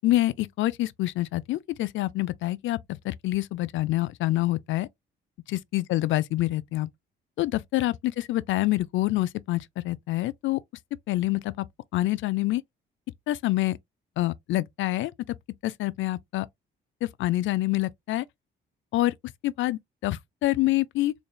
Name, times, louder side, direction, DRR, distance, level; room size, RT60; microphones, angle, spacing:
voice 1, 0.0-2.8 3.0-4.9 5.5-6.9 7.4-10.6 11.1-11.6 11.9-12.6 13.3-13.8 14.2-15.1 15.6-16.5 17.0-18.2 18.9-19.1 19.4-21.1, left 16 dB, 75° left, 0.4 m, -26 dB
3.8 x 3.5 x 2.3 m
cardioid pair, 90°, 20 cm